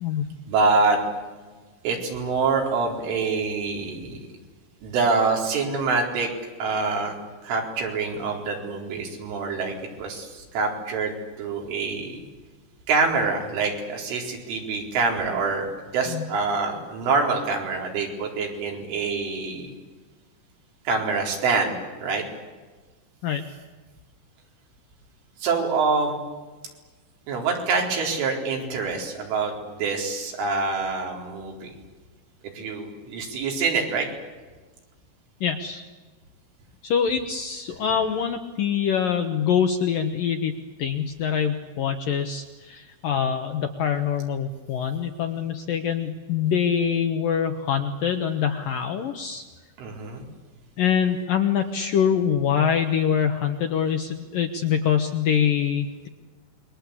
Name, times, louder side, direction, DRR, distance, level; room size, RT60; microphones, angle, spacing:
voice 1, 0.5-1.0 1.8-4.2 4.8-6.3 6.6-7.1 7.4-12.2 12.9-15.7 15.9-19.7 20.8-22.2 25.4-26.2 27.3-31.7 32.5-34.1 49.8-50.2, right 4 dB, 85° right, 1 dB, 6.9 m, -25 dB
voice 2, 35.4-35.8 36.8-49.4 50.8-56.1, left 8 dB, 70° left, 6 dB, 2.2 m, -24 dB
28.0 x 23.0 x 8.5 m, 1.3 s
omnidirectional pair, 5.5 m